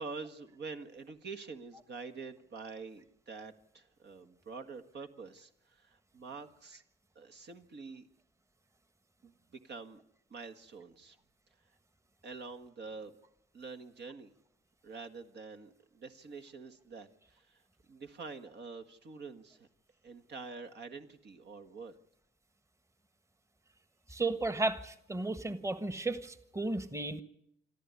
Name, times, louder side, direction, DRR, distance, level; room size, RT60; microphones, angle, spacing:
voice 1, 0.0-6.8 7.2-8.1 9.2-10.0 10.3-11.2 12.2-13.1 13.5-14.3 14.8-19.7 20.0-21.9, right 4 dB, 60° right, 7 dB, 1.8 m, -46 dB
voice 2, 24.1-27.2, right 2 dB, 15° right, 10 dB, 1.5 m, -34 dB
27.0 x 13.5 x 9.7 m, 0.78 s
cardioid pair, 90°, 20 cm